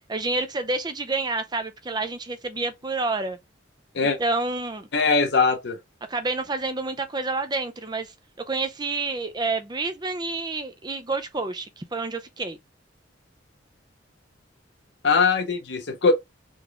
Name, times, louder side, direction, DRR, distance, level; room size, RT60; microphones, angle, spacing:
voice 1, 0.1-3.4 4.2-4.9 6.1-8.1 8.5-12.6, right 3 dB, 20° right, 0.5 m, -28 dB
voice 2, 4.9-5.8 15.0-16.1, left 4 dB, 65° left, 0.7 m, -21 dB
3.9 x 3.6 x 3.4 m
head